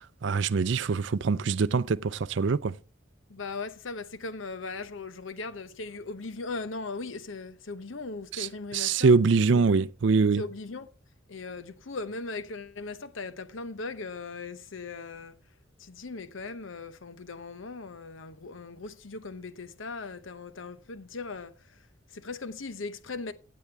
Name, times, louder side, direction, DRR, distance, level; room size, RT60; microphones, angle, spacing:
voice 1, 0.2-2.7 8.3-10.4, right 4 dB, 65° right, 0.4 m, -24 dB
voice 2, 3.3-9.2 9.5-9.8 10.4-10.9 11.3-15.4 15.8-21.5 22.1-23.3, left 3 dB, 80° left, 0.9 m, -38 dB
15.5 x 8.4 x 3.4 m
head